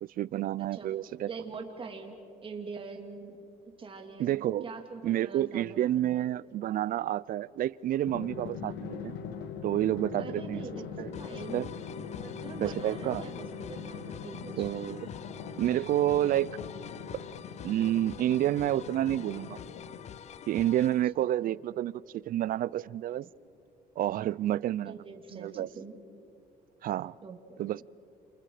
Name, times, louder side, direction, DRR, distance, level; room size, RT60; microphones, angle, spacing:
voice 1, 0.0-1.3 4.2-4.6 5.0-9.1 9.6-10.6 11.0-11.1 11.5-11.7 12.6-13.3 14.6-15.1 15.6-16.5 17.6-19.6 20.5-23.2 24.0-25.0 25.3-25.7 26.8-27.1 27.6-27.8, right 12 dB, 55° right, 22 dB, 0.5 m, -29 dB
voice 2, 1.3-3.5 3.8-6.2 10.2-10.8 11.2-11.6 12.1-14.7 21.2-21.6 23.2-23.3 24.8-26.0 27.2-27.6, right 4 dB, 30° right, 3 dB, 3.0 m, -44 dB
Drum, 8.1-20.4, left 6 dB, 85° left, 1.7 m, -42 dB
sound 1, 11.1-21.0, left 9 dB, 40° left, 0.6 m, -47 dB
29.5 x 28.0 x 5.0 m, 2.8 s
cardioid pair, 110°, 17 cm